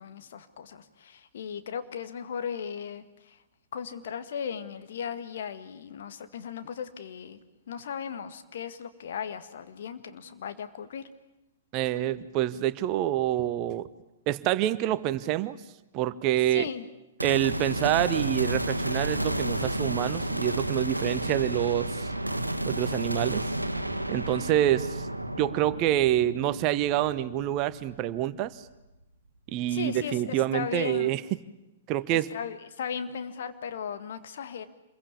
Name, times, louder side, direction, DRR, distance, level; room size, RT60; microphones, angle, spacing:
voice 1, 0.0-3.4 3.7-7.4 7.7-11.0 16.5-16.9 29.7-31.2 32.1-34.6, left 7 dB, 55° left, 9 dB, 2.0 m, -37 dB
voice 2, 11.7-13.9 14.3-15.6 15.9-16.7 17.2-22.1 22.7-23.5 24.1-25.1 25.4-28.6 29.5-31.2 31.9-32.3, right 13 dB, 30° right, 15 dB, 1.0 m, -27 dB
sound 1, 17.2-28.5, right 1 dB, 85° right, 1.5 m, -31 dB
27.5 x 22.0 x 8.6 m, 0.96 s
figure-of-eight pair, 110°, 0 cm